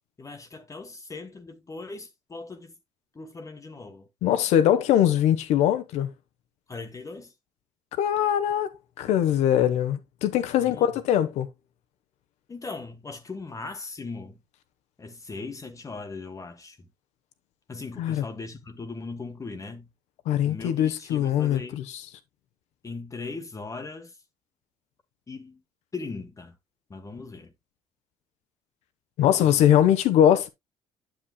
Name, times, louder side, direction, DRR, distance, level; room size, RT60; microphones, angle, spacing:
voice 1, 0.2-2.7 3.1-4.1 6.7-7.3 10.6-11.0 12.5-14.4 15.0-16.9 17.7-19.9 20.4-21.8 22.8-24.2 25.3-25.6 25.9-26.6 26.9-27.5 29.3-29.6, left 3 dB, 30° left, 1.3 m, -39 dB
voice 2, 4.2-6.1 8.0-11.5 18.0-18.2 20.3-21.8 29.2-30.5, left 10 dB, 75° left, 1.0 m, -22 dB
9.1 x 7.3 x 2.2 m
supercardioid pair, 70°, 12 cm